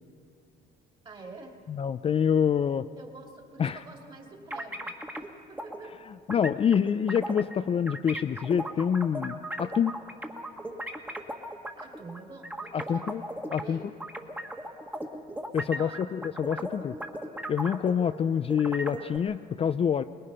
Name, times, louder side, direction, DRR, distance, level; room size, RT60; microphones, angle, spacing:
voice 1, 1.0-1.5 3.0-5.2 5.5-6.0 11.8-13.3 13.6-13.9 15.6-16.1, right 3 dB, 30° right, 1 dB, 2.9 m, -46 dB
voice 2, 1.7-2.9 3.6-3.8 6.3-9.9 12.7-13.2 13.5-13.8 15.5-17.0 17.5-20.0, left 8 dB, 35° left, 10 dB, 0.5 m, -26 dB
sound 1, 4.5-5.3 5.6-5.8 6.3-7.6 7.9-13.6 14.0-18.2 18.5-19.2, right 1 dB, 10° right, 1.7 m, -37 dB
23.5 x 21.0 x 5.6 m, 2.5 s
cardioid pair, 110°, 17 cm